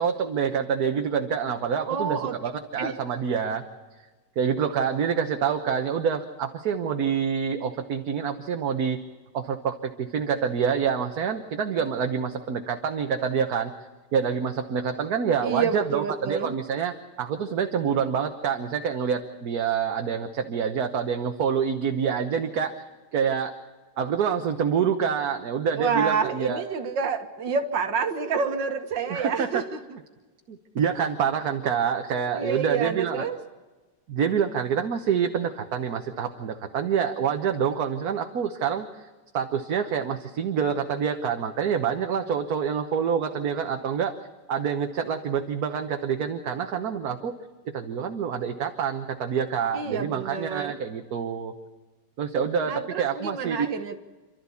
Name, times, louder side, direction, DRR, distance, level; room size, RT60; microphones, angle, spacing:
voice 1, 0.0-3.6 4.4-9.0 9.3-13.7 14.1-22.7 23.1-23.5 24.0-26.6 29.1-29.6 30.5-33.2 34.1-39.1 39.3-44.1 44.5-47.3 47.7-51.5 52.2-53.7, right 7 dB, 60° right, 5 dB, 1.5 m, -27 dB
voice 2, 1.9-2.4 2.8-2.9 15.4-16.5 25.7-29.8 32.3-33.4 49.7-50.8 52.7-54.0, right 5 dB, 75° right, 7 dB, 2.1 m, -28 dB
28.5 x 13.0 x 8.4 m, 1.3 s
omnidirectional pair, 2.0 m